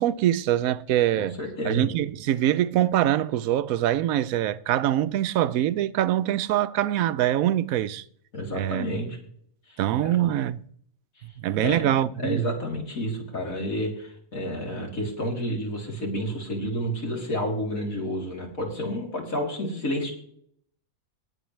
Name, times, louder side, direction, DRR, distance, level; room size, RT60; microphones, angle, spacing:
voice 1, 0.0-1.4 1.6-8.0 8.5-8.9 9.8-10.6 11.4-12.4, right 12 dB, 80° right, 1.0 m, -24 dB
voice 2, 1.1-1.9 8.3-9.2 9.7-10.3 11.2-11.3 11.6-20.1, equal, 75° left, 3.7 m, -30 dB
19.0 x 8.7 x 3.2 m
omnidirectional pair, 1.5 m